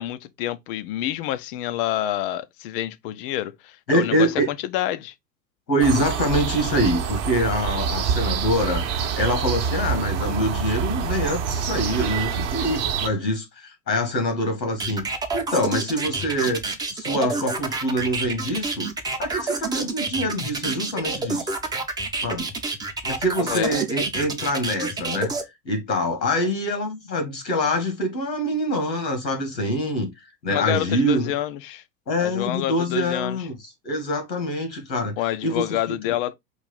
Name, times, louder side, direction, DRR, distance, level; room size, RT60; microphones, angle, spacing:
voice 1, 0.0-5.1 23.4-23.8 30.5-31.8 32.2-33.5 35.2-36.3, left 13 dB, 35° left, 0.5 m, -28 dB
voice 2, 3.9-4.5 5.7-8.8 9.2-16.6 16.9-18.9 19.2-21.5 22.2-22.5 23.0-25.4 25.7-30.1 30.4-31.3 32.1-33.6 33.8-35.1 35.4-35.6 36.0-36.1, equal, 85° left, 2.0 m, -25 dB
sound 1, 5.8-13.1, right 7 dB, 45° right, 0.9 m, -26 dB
sound 2, 14.8-25.4, right 3 dB, 10° right, 0.6 m, -28 dB
4.7 x 2.7 x 4.0 m
figure-of-eight pair, 100°, 50 cm